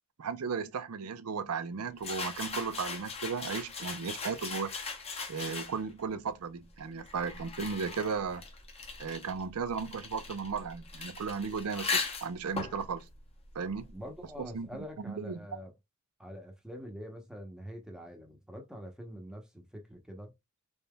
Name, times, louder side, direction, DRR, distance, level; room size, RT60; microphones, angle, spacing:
voice 1, 0.2-4.7 5.3-8.4 9.0-13.0 13.5-13.8 14.4-15.5, right 5 dB, 85° right, 0.5 m, -35 dB
sound 1, 2.0-6.0 6.8-14.2, left 4 dB, 30° left, 0.8 m, -39 dB
voice 2, 13.9-15.7 16.2-20.3, equal, 5° right, 0.8 m, -45 dB
3.9 x 3.6 x 2.2 m
head